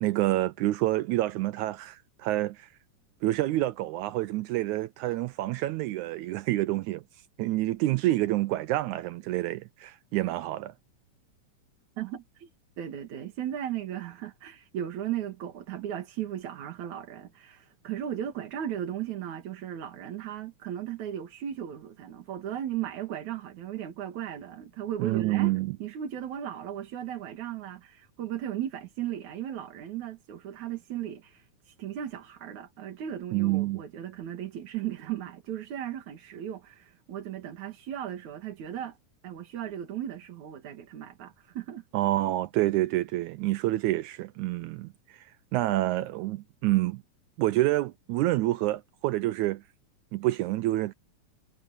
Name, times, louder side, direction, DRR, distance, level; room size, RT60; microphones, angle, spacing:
voice 1, 0.0-2.7 3.2-7.0 7.4-10.7 25.0-25.8 33.3-33.8 41.9-47.0 47.4-49.6 50.1-50.9, right 16 dB, 80° right, 1.8 m, -28 dB
voice 2, 12.0-12.5 12.8-25.5 25.8-39.0 39.2-41.8, right 10 dB, 65° right, 3.2 m, -36 dB
omnidirectional pair, 3.8 m